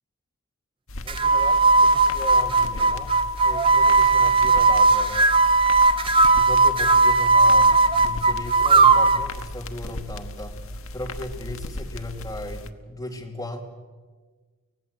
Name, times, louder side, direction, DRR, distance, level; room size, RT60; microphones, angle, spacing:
sound 1, 0.9-12.7, left 1 dB, 75° left, 1.2 m, -37 dB
voice 1, 1.0-3.1 3.4-5.4 6.3-13.6, left 1 dB, 15° left, 1 dB, 2.7 m, -36 dB
sound 2, 1.1-9.3, right 3 dB, 25° right, 0.8 m, -17 dB
25.0 x 18.0 x 8.1 m, 1.4 s
head